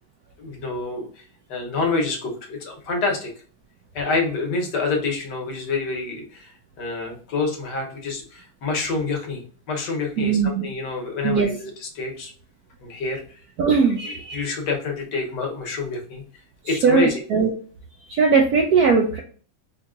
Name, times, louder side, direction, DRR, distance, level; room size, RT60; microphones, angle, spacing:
voice 1, 0.4-1.2 1.5-3.3 3.9-9.4 9.7-12.3 12.8-13.4 14.1-16.2 16.6-17.2, left 3 dB, 65° left, 1 dB, 1.5 m, -27 dB
voice 2, 10.2-10.7 11.2-11.5 13.6-14.4 16.6-17.5 18.1-19.2, right 5 dB, 75° right, 2 dB, 0.9 m, -19 dB
4.3 x 2.8 x 2.4 m, 0.43 s
omnidirectional pair, 2.2 m